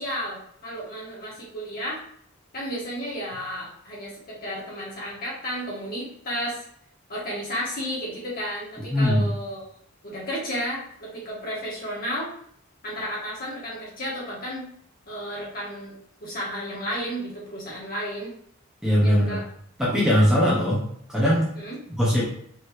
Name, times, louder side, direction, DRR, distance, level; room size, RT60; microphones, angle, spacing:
voice 1, 0.0-2.0 2.5-6.6 7.1-9.6 10.0-12.3 12.8-14.6 15.1-15.9 16.2-18.3 19.0-19.4 21.6-21.8, equal, 45° left, -5 dB, 1.8 m, -32 dB
voice 2, 8.9-9.2 18.8-19.4 19.8-21.5 21.9-22.2, equal, 5° right, -7 dB, 0.9 m, -21 dB
4.5 x 3.1 x 3.2 m, 0.65 s
head